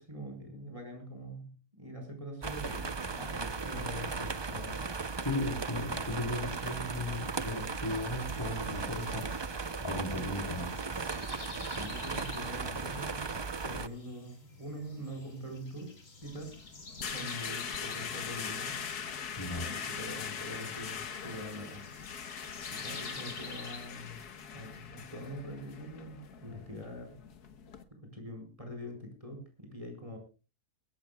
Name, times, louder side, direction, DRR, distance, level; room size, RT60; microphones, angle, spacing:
voice 1, 0.0-1.5 1.8-5.1 11.8-13.2 13.6-15.9 16.2-16.6 17.0-18.8 19.5-21.8 22.7-27.2 27.9-30.2, equal, 20° right, 4 dB, 4.9 m, -44 dB
sound 1, 2.4-13.9, right 4 dB, 45° right, 0.3 m, -37 dB
voice 2, 5.2-9.3 9.8-10.7 19.4-19.7, left 1 dB, 15° left, 3 dB, 3.8 m, -36 dB
sound 2, 7.3-23.9, left 3 dB, 55° left, 3.1 m, -50 dB
sound 3, 16.2-27.8, left 7 dB, 85° left, 1.8 m, -41 dB
22.0 x 16.5 x 2.3 m, 0.32 s
omnidirectional pair, 1.6 m